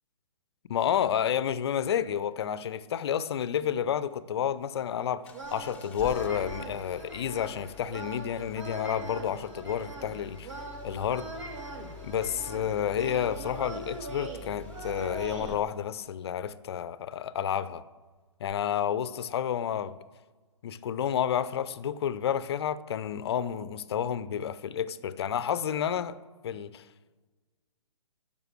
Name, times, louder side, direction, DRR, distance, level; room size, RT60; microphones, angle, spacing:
voice 1, 0.7-10.5 10.8-11.3 12.0-17.8 18.4-19.9 20.6-26.2 26.4-26.8, left 9 dB, 45° left, 0.6 m, -30 dB
Engine starting, 5.2-15.9 18.5-18.6, left 4 dB, 5° left, 0.7 m, -47 dB
sound 1, 5.3-15.5, right 2 dB, 60° right, 1.9 m, -42 dB
11.5 x 5.3 x 6.6 m
figure-of-eight pair, 130°, 18 cm